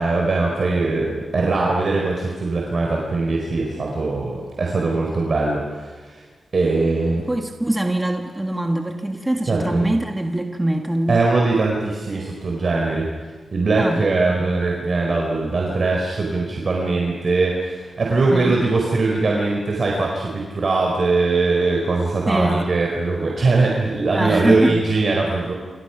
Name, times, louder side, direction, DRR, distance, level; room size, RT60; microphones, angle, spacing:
voice 1, 0.0-6.2 6.5-7.2 9.5-9.8 11.1-13.1 13.5-25.5, right 3 dB, 50° right, -1 dB, 4.5 m, -21 dB
voice 2, 7.2-11.3 13.8-14.0 14.4-14.5 18.1-18.6 22.3-22.7 24.1-24.8, right 1 dB, 15° right, 3 dB, 1.6 m, -23 dB
28.5 x 27.0 x 6.0 m, 1.4 s
wide cardioid pair, 115°, 0 cm